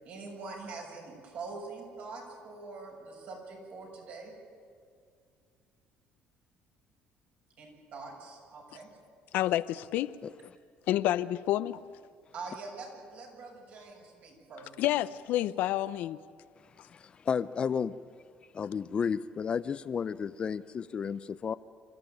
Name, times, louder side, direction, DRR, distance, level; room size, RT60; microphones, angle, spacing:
voice 1, 0.0-4.3 7.6-8.9 12.3-14.9, right 3 dB, 60° right, 6.9 m, -44 dB
voice 2, 9.3-10.2 10.9-11.8 14.8-16.2, left 14 dB, 75° left, 0.6 m, -29 dB
voice 3, 16.9-17.9 18.5-21.5, left 6 dB, 35° left, 0.5 m, -32 dB
27.5 x 14.0 x 9.1 m
cardioid pair, 135°, 3 cm